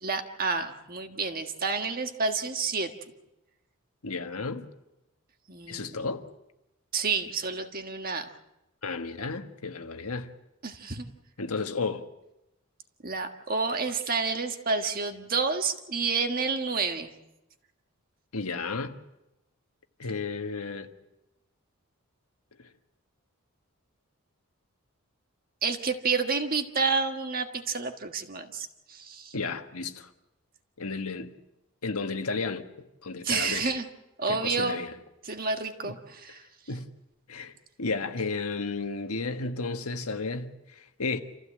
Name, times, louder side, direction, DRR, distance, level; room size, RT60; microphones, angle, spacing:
voice 1, 0.0-2.9 5.5-6.1 6.9-8.2 10.6-11.1 13.0-17.1 25.6-29.3 33.2-33.9 34.2-34.8 35.2-36.4, right 4 dB, 40° right, 1.6 m, -29 dB
voice 2, 4.0-4.7 5.7-6.2 8.8-10.3 11.4-12.1 18.3-19.0 20.0-20.9 29.3-30.1 30.8-31.3 31.8-32.6 33.0-33.7 34.3-34.9 35.8-35.9 36.7-36.9 37.3-37.5 37.8-41.2, left 4 dB, 85° left, 1.5 m, -33 dB
28.0 x 15.0 x 7.7 m
head